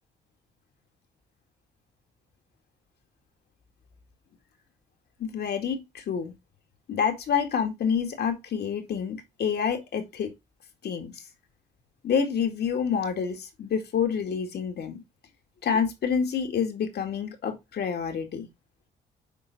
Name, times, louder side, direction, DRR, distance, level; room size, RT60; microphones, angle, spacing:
voice 1, 5.2-6.3 6.9-10.3 10.8-11.1 12.0-15.0 15.6-18.5, left 7 dB, 65° left, 2.1 m, -28 dB
10.5 x 4.0 x 2.6 m
hypercardioid pair, 55°, 18 cm